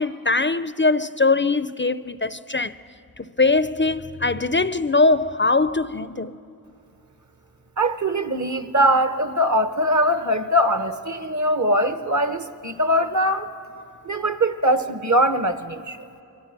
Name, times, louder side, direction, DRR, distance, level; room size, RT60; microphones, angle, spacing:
voice 1, 0.0-2.8 3.2-6.4, left 3 dB, 30° left, 0.5 m, -21 dB
voice 2, 7.8-13.5 14.0-16.0, equal, 50° right, 1.2 m, -21 dB
28.5 x 23.0 x 6.8 m
wide cardioid pair, 50°, 37 cm